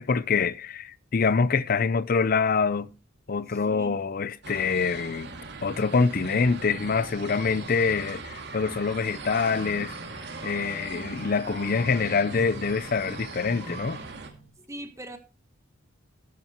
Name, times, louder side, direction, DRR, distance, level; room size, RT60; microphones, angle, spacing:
voice 1, 0.0-2.9 3.3-5.3 5.6-10.0 10.4-14.0, left 5 dB, 45° left, 0.5 m, -25 dB
voice 2, 3.5-3.9 14.6-15.2, right 1 dB, 15° right, 1.3 m, -41 dB
sound 1, 4.4-14.3, right 3 dB, 55° right, 2.1 m, -40 dB
sound 2, 5.6-14.5, equal, 80° right, 7.6 m, -45 dB
13.5 x 11.5 x 3.0 m
head